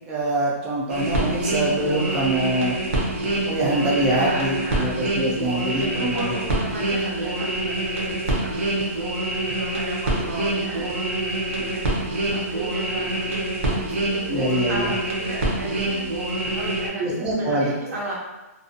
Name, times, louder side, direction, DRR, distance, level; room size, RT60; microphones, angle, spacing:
voice 1, 0.1-2.8 3.4-6.3 14.3-14.9 17.0-17.7, right 1 dB, 10° right, -6 dB, 0.3 m, -24 dB
sound 1, 0.9-16.9, right 1 dB, 50° right, 0.7 m, -26 dB
voice 2, 4.1-5.2 5.7-9.1 9.5-10.9 11.4-11.8 12.3-16.0 16.5-18.2, right 1 dB, 90° right, -4 dB, 0.9 m, -35 dB
2.5 x 2.2 x 2.5 m, 1.1 s
hypercardioid pair, 180°, 8 cm